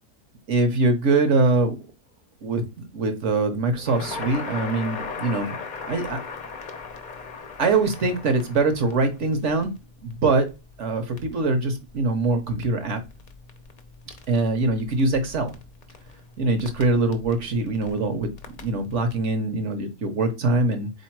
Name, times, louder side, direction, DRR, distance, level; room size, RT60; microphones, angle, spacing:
voice 1, 0.5-1.8 2.4-5.6 5.8-6.2 7.6-9.7 10.0-10.5 10.8-13.0 14.3-15.5 16.4-18.3 18.6-20.9, right 3 dB, 55° right, 7 dB, 0.9 m, -23 dB
Crackle, 3.7-19.2, left 4 dB, 60° left, 0.4 m, -39 dB
4.0 x 2.8 x 4.5 m, 0.28 s
omnidirectional pair, 1.8 m